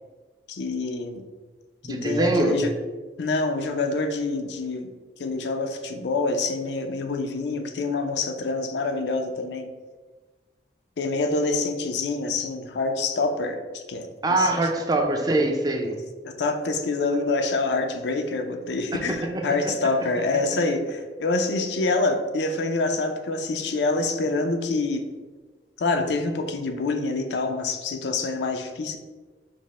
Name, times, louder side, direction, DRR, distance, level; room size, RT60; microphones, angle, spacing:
voice 1, 0.5-1.2 1.8-2.7 3.2-4.9 5.2-9.7 11.0-14.6 15.8-16.0 16.2-25.1 25.8-29.0, left 3 dB, 80° left, 6 dB, 0.4 m, -26 dB
voice 2, 1.8-2.6 14.2-16.0 18.9-19.7, right 2 dB, 20° right, 3 dB, 0.4 m, -24 dB
5.1 x 2.0 x 4.1 m, 1.3 s
head